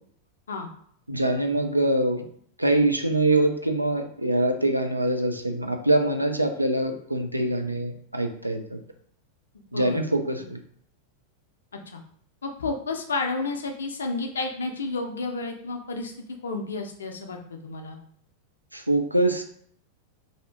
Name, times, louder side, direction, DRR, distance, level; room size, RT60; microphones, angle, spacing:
voice 1, 1.1-2.3 2.6-8.8 9.7-10.6 18.7-19.4, right 1 dB, 85° right, 6 dB, 0.3 m, -24 dB
voice 2, 9.5-10.0 10.4-10.5 11.7-12.0 12.4-16.1 16.4-18.0, left 3 dB, 70° left, 4 dB, 0.5 m, -31 dB
2.7 x 2.4 x 3.3 m, 0.63 s
figure-of-eight pair, 90°, 0 cm